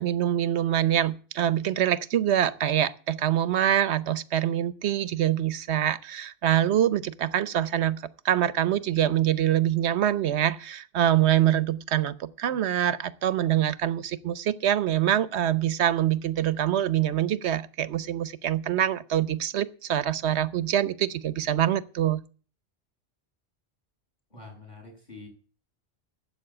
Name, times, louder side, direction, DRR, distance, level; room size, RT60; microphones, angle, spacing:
voice 1, 0.0-22.2, right 11 dB, 85° right, 1.1 m, -25 dB
voice 2, 24.3-25.3, left 3 dB, 40° left, 7.2 m, -45 dB
12.5 x 7.9 x 8.8 m
omnidirectional pair, 1.1 m